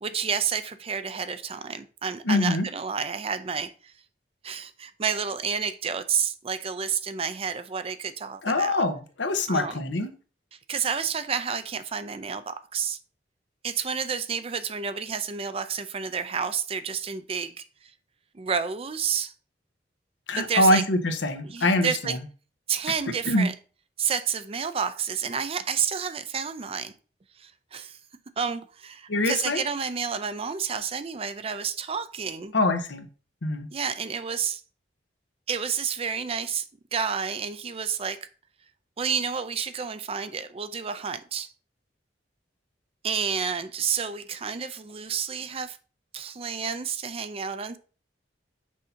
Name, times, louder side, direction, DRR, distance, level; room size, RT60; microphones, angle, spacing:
voice 1, 0.0-3.9 4.4-8.8 9.5-9.8 10.7-13.0 13.6-17.9 18.3-19.3 20.4-20.8 21.4-22.2 22.7-23.5 24.0-26.9 27.4-28.0 28.4-32.5 33.7-34.6 35.5-36.6 36.9-38.3 39.0-41.5 43.0-45.8 46.1-47.8, right 6 dB, 30° right, 0.5 m, -30 dB
voice 2, 2.3-2.7 8.4-10.1 20.3-22.2 23.3-23.5 29.1-29.6 32.5-33.1 33.4-33.7, left 2 dB, 90° left, 0.9 m, -24 dB
6.3 x 2.7 x 5.6 m
head